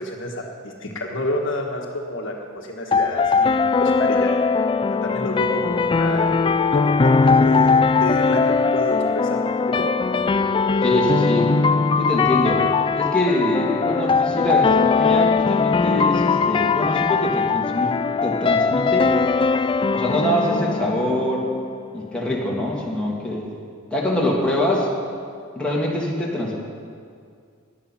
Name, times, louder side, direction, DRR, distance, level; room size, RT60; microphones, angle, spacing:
voice 1, 0.0-4.3 5.0-6.3 6.7-9.9, left 1 dB, 60° left, 1 dB, 1.5 m, -29 dB
sound 1, 2.9-21.9, left 4 dB, 25° left, 0.3 m, -20 dB
voice 2, 10.8-11.5 12.0-12.6 12.9-18.0 18.2-19.1 19.9-21.4 21.9-23.4 23.9-24.9 25.6-26.6, left 1 dB, 5° left, -5 dB, 2.6 m, -24 dB
18.0 x 11.0 x 5.8 m, 2.2 s
head